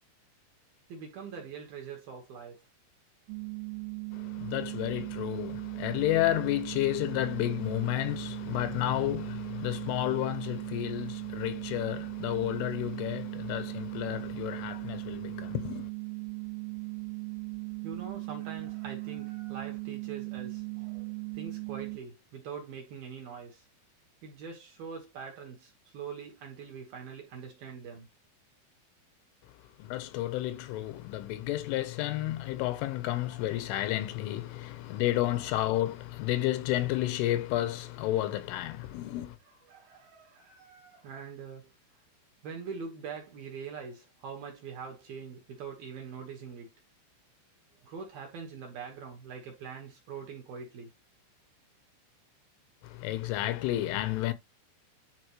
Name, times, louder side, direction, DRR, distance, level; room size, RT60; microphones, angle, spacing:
voice 1, 0.9-2.6 17.8-23.7 24.2-28.1 34.9-35.0 39.0-39.1 39.5-41.7 42.4-46.7 47.8-50.9, right 6 dB, 65° right, 2.6 m, -43 dB
sound 1, 3.3-22.0, right 37 dB, 85° right, 3.1 m, -38 dB
voice 2, 4.1-15.9 29.8-39.4 52.8-54.3, left 15 dB, 85° left, 3.2 m, -31 dB
11.0 x 4.9 x 3.1 m
omnidirectional pair, 5.8 m